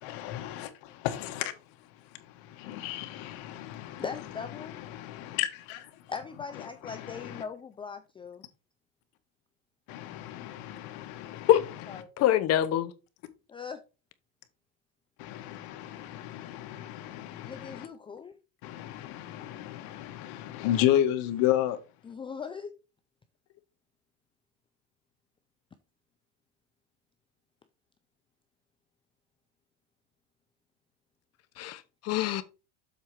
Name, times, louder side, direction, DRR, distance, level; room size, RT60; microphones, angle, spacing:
voice 1, 0.0-4.0 4.5-6.1 6.5-7.4 9.9-12.0 15.2-17.9 18.6-21.8, left 12 dB, 70° left, 1.4 m, -33 dB
voice 2, 4.0-4.8 6.1-8.4 11.9-12.3 13.5-13.8 17.5-18.3 22.0-22.7, left 6 dB, 15° left, 0.4 m, -40 dB
voice 3, 12.2-12.9 31.6-32.4, left 11 dB, 40° left, 0.9 m, -24 dB
7.4 x 4.3 x 4.7 m
cardioid pair, 140°, 38 cm